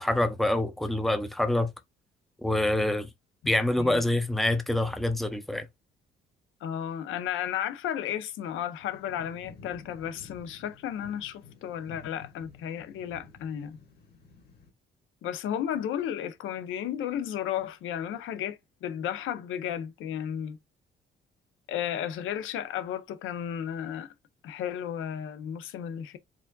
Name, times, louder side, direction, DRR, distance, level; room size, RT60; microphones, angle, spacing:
voice 1, 0.0-1.7 2.4-3.1 3.4-5.7, left 1 dB, ahead, 0.6 m, -26 dB
voice 2, 6.6-13.8 15.2-20.6 21.7-24.1 24.4-26.2, left 10 dB, 85° left, 0.7 m, -33 dB
sound 1, 8.8-14.7, left 4 dB, 55° left, 1.8 m, -52 dB
4.7 x 2.6 x 2.3 m
cardioid pair, 90°, 20 cm